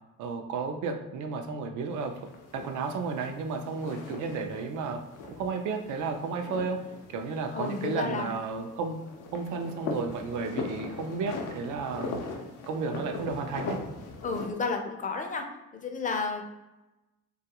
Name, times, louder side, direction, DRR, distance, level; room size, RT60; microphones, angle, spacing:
voice 1, 0.2-2.1 2.5-5.0 5.4-6.8 7.1-9.0 9.3-12.2 12.7-13.8, right 4 dB, 75° right, 4 dB, 0.5 m, -32 dB
sound 1, 1.9-14.5, left 4 dB, 85° left, 0.6 m, -40 dB
voice 2, 7.5-8.3 14.2-15.5 15.7-16.4, left 4 dB, 25° left, 3 dB, 0.4 m, -31 dB
2.4 x 2.2 x 2.8 m, 0.99 s
cardioid pair, 90°, 30 cm